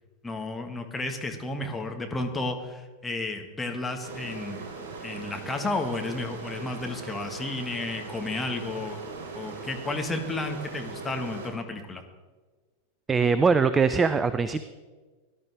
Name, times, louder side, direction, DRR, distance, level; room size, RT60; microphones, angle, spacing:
voice 1, 0.2-4.6 5.0-9.0 9.3-12.0, left 2 dB, 10° left, 4 dB, 1.5 m, -32 dB
sound 1, 4.0-11.5, right 4 dB, 55° right, 4.0 m, -39 dB
voice 2, 13.1-14.6, right 5 dB, 15° right, 13 dB, 0.5 m, -22 dB
17.5 x 11.5 x 3.5 m, 1.3 s
figure-of-eight pair, 90°, 0 cm